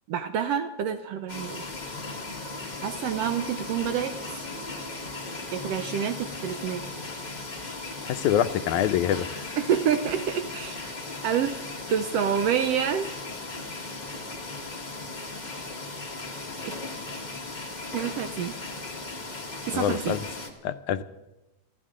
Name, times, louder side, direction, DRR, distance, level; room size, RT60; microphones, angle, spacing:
voice 1, 0.1-1.6 2.8-4.4 5.5-6.8 9.6-10.9 11.2-11.6 11.9-13.1 16.6-16.7 17.9-18.5 19.7-20.2, right 8 dB, 75° right, 9 dB, 1.5 m, -28 dB
sound 1, 1.3-20.5, left 3 dB, 40° left, 0.5 m, -37 dB
sound 2, 2.9-9.6 10.1-10.2 10.7-10.8, right 4 dB, 40° right, 2.3 m, -51 dB
voice 2, 8.0-9.4 19.7-20.3 20.6-21.0, left 11 dB, 85° left, 12 dB, 2.1 m, -25 dB
29.0 x 12.0 x 3.7 m, 0.98 s
omnidirectional pair, 3.4 m